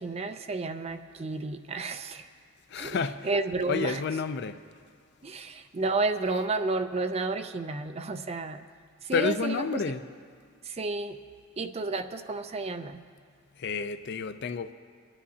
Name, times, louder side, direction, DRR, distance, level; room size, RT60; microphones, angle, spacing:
voice 1, 0.0-2.3 2.8-3.0 3.2-4.0 5.2-8.6 9.0-9.8 10.6-11.2 11.6-13.0, right 3 dB, 30° right, 0.4 m, -31 dB
voice 2, 2.7-3.3 3.7-4.6 9.1-10.0 13.6-14.7, left 5 dB, 55° left, 0.4 m, -30 dB
25.5 x 10.0 x 2.8 m
head